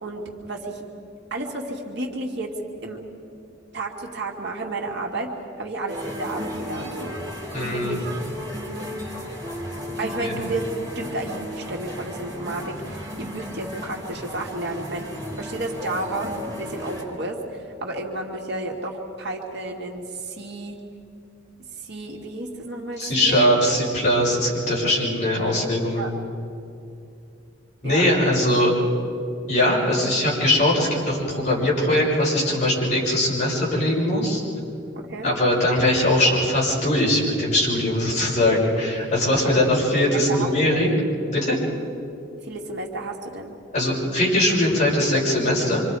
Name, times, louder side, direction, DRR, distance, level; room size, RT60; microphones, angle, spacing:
voice 1, 0.0-0.8 1.3-3.0 3.7-7.2 7.7-8.1 10.0-15.1 15.4-17.4 17.8-20.8 21.8-23.6 26.0-26.1 27.8-28.1 34.9-35.3 39.4-39.6 40.1-40.8 42.4-43.6, right 2 dB, 60° right, 0 dB, 2.2 m, -31 dB
sound 1, 5.9-17.0, equal, 20° right, 3.9 m, -34 dB
voice 2, 7.5-7.9 10.2-10.4 23.0-26.2 27.8-28.7 29.5-34.4 35.2-40.9 41.3-41.6 43.7-45.8, left 1 dB, 40° left, -5 dB, 6.3 m, -21 dB
26.5 x 26.0 x 4.9 m, 2.6 s
head